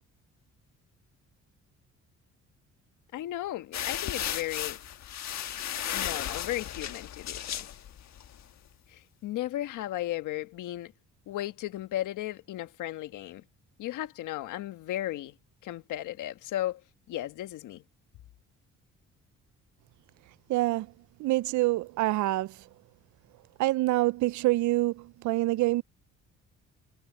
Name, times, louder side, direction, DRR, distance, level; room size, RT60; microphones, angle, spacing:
voice 1, 3.1-4.8 5.9-7.7 8.9-10.9 11.3-13.4 13.8-15.3 15.6-16.8 17.1-17.8, left 14 dB, 85° left, 1.4 m, -35 dB
sound 1, 3.7-8.4, left 10 dB, 65° left, 1.4 m, -35 dB
voice 2, 20.5-20.9 21.2-22.7 23.6-25.8, right 18 dB, 70° right, 0.5 m, -26 dB
cardioid pair, 90°, 30 cm